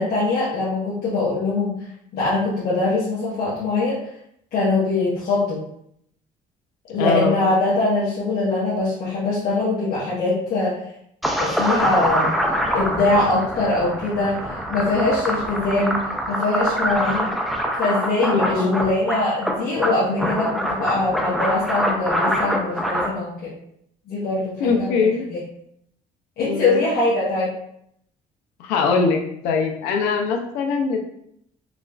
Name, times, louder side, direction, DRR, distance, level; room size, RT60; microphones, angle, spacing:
voice 1, 0.0-1.7 2.1-4.0 4.5-5.6 6.9-10.8 11.4-12.3 12.7-17.3 17.8-23.5 24.1-25.4 26.4-27.5, left 2 dB, 70° left, -9 dB, 1.1 m, -22 dB
voice 2, 7.0-7.4 18.2-18.8 24.6-25.2 26.4-26.8 28.6-31.0, left 4 dB, 90° left, 3 dB, 0.5 m, -22 dB
sound 1, 11.2-23.1, equal, ahead, 0.6 m, -24 dB
4.8 x 2.4 x 2.3 m, 0.72 s
supercardioid pair, 75°, 16 cm